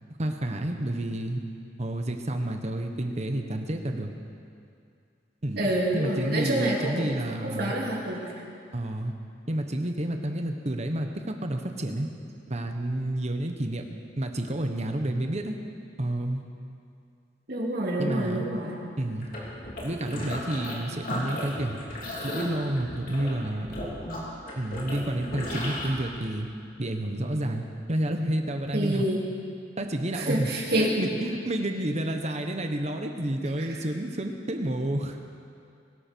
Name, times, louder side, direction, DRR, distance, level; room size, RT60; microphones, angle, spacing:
voice 1, 0.2-1.4 1.8-4.1 5.4-7.7 8.7-9.1 9.5-12.1 12.5-13.8 14.2-15.6 16.0-16.4 18.0-18.4 19.0-19.3 19.8-21.8 22.2-23.8 24.6-26.5 26.8-29.0 29.8-30.5 30.8-35.2, right 1 dB, 40° right, 5 dB, 1.2 m, -30 dB
voice 2, 5.5-6.9 7.4-8.3 17.5-18.7 28.7-29.2 30.1-30.9, right 1 dB, 60° right, -3 dB, 3.0 m, -27 dB
sound 1, 19.2-20.8 21.0-25.9, left 1 dB, 50° left, 3.5 m, -35 dB
21.5 x 12.0 x 4.6 m, 2.4 s
head